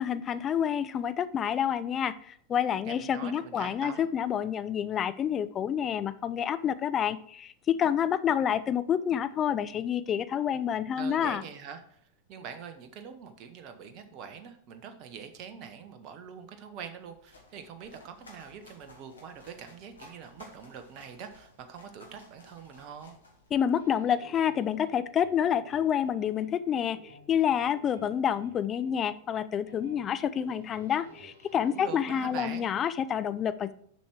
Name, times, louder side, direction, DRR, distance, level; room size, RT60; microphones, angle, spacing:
voice 1, 0.0-11.4 23.5-33.7, left 9 dB, 25° left, 13 dB, 0.4 m, -28 dB
voice 2, 2.8-4.0 11.0-23.2 31.7-32.6, right 7 dB, 40° right, 8 dB, 1.0 m, -44 dB
sound 1, 17.0-23.9, left 2 dB, 75° left, 1.9 m, -55 dB
sound 2, 23.7-32.6, right 2 dB, 60° right, 3.3 m, -54 dB
7.1 x 6.0 x 4.7 m, 0.62 s
figure-of-eight pair, 90°, 0 cm